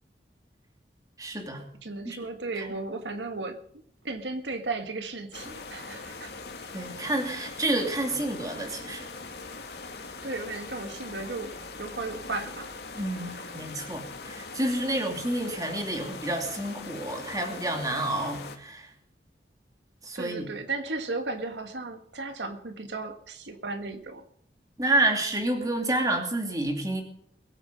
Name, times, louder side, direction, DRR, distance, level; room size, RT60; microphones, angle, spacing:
voice 1, 1.2-1.6 2.0-2.2 2.6-2.7 6.7-9.1 12.9-18.9 20.0-20.5 24.8-27.0, right 1 dB, 20° right, 3 dB, 2.7 m, -29 dB
voice 2, 1.8-3.6 4.0-6.3 10.2-12.7 13.1-13.5 20.1-24.2, right 3 dB, 85° right, 7 dB, 1.6 m, -35 dB
sound 1, 5.3-18.6, left 3 dB, 65° left, 2.3 m, -41 dB
22.0 x 9.0 x 5.3 m, 0.64 s
head